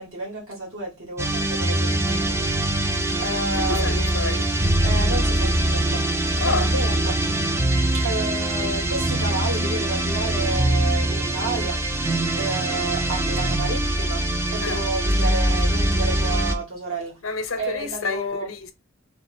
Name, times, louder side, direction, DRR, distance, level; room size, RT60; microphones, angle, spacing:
voice 1, 0.0-2.7 3.2-4.2 4.8-6.0 6.4-7.2 7.9-11.8 12.3-14.2 14.5-17.1 17.6-18.5, right 2 dB, 85° right, 2.0 m, -30 dB
sound 1, 1.2-16.6, right 1 dB, 10° right, 0.4 m, -23 dB
voice 2, 3.6-4.5 6.4-6.7 14.6-14.8 17.2-18.7, left 4 dB, 80° left, 0.7 m, -29 dB
3.2 x 2.5 x 4.2 m
head